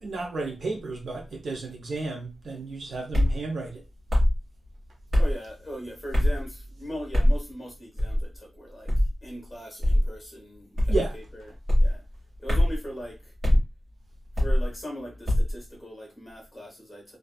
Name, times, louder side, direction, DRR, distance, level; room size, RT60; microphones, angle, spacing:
voice 1, 0.0-3.8 10.9-11.1, right 3 dB, 60° right, 0.7 m, -32 dB
sound 1, 3.1-3.4 4.1-4.4 5.1-5.4 6.1-6.4 7.1-7.4 8.0-8.3 8.9-9.1 9.8-10.1 10.8-11.1 11.7-11.9 12.5-12.8 13.4-13.6 14.3-14.7 15.3-15.5, left 1 dB, 35° right, 1.4 m, -21 dB
voice 2, 5.2-8.9 9.2-11.5 11.8-12.0 12.4-13.3 14.4-17.2, equal, 15° left, 1.1 m, -40 dB
2.5 x 2.3 x 2.3 m
wide cardioid pair, 175°, 0 cm